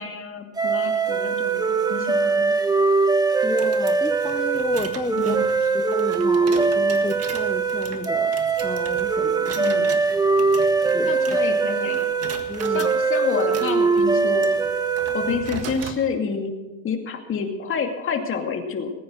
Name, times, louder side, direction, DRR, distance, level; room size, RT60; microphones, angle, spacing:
voice 1, 0.0-2.5 5.1-5.4 9.5-9.9 11.1-12.1 12.7-14.5 15.1-16.6 16.8-18.9, left 5 dB, 45° left, 2.4 m, -28 dB
sound 1, 0.6-15.6, right 4 dB, 15° right, 1.0 m, -22 dB
voice 2, 3.4-5.5 5.7-9.6 10.9-11.2 12.5-12.9, left 3 dB, 10° left, 0.5 m, -32 dB
sound 2, 3.4-11.7 11.9-12.9 13.4-16.0, right 6 dB, 55° right, 1.7 m, -39 dB
19.5 x 9.4 x 6.4 m
cardioid pair, 130°, 30 cm